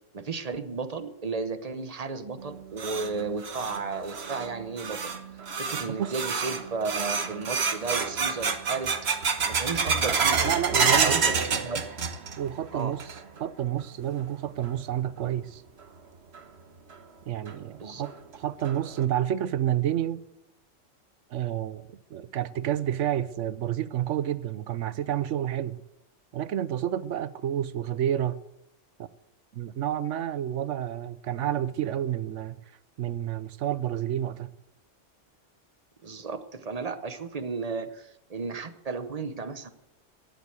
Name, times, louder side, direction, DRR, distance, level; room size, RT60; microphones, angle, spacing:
voice 1, 0.1-5.1 5.6-9.0 9.4-11.2 11.6-11.8 12.7-13.0 17.8-18.0 36.0-39.7, right 4 dB, 35° right, 1.0 m, -34 dB
sound 1, 2.4-12.5 12.8-13.4 13.8-13.9 14.6-14.7 16.3-16.4 16.9-17.0 17.5-17.6 18.0-18.1 18.7-19.0, right 5 dB, 60° right, 1.4 m, -28 dB
voice 2, 10.4-11.1 12.4-15.6 17.3-20.2 21.3-25.8 26.3-28.4 29.0-29.1 29.5-32.6 33.0-34.5, right 11 dB, 75° right, 1.0 m, -30 dB
13.0 x 10.5 x 8.0 m
omnidirectional pair, 1.3 m